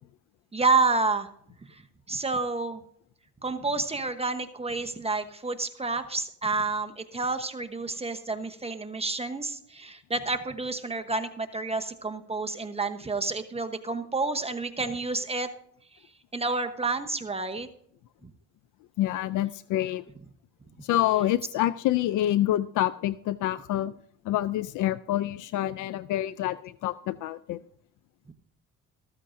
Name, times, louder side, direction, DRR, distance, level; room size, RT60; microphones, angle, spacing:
voice 1, 0.5-1.3 1.7-1.8 2.1-2.8 3.4-15.5 16.3-17.7, right 3 dB, 20° right, 7 dB, 1.0 m, -29 dB
voice 2, 19.0-20.0 20.8-23.9 24.3-27.6, left 13 dB, 80° left, 16 dB, 0.5 m, -27 dB
14.0 x 14.0 x 2.6 m, 0.63 s
cardioid pair, 90°, 30 cm